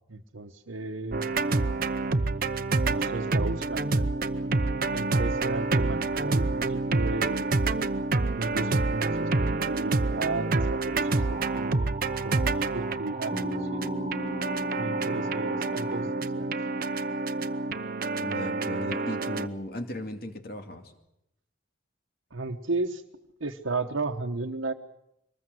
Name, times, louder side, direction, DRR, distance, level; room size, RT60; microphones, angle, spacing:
voice 1, 0.1-1.3 2.8-4.4 4.9-7.5 8.4-11.9 12.2-13.8 14.7-16.1 16.3-16.5 22.3-23.0 23.4-24.7, right 3 dB, 85° right, 1 dB, 1.1 m, -34 dB
sound 1, 1.1-19.5, right 3 dB, 45° right, 0.8 m, -28 dB
sound 2, 11.0-16.0, right 1 dB, 30° right, 2.2 m, -42 dB
Bass guitar, 13.3-17.3, right 1 dB, 15° left, 3.2 m, -39 dB
voice 2, 18.2-20.9, left 1 dB, 50° left, 6 dB, 2.4 m, -37 dB
24.0 x 20.5 x 7.8 m, 0.83 s
head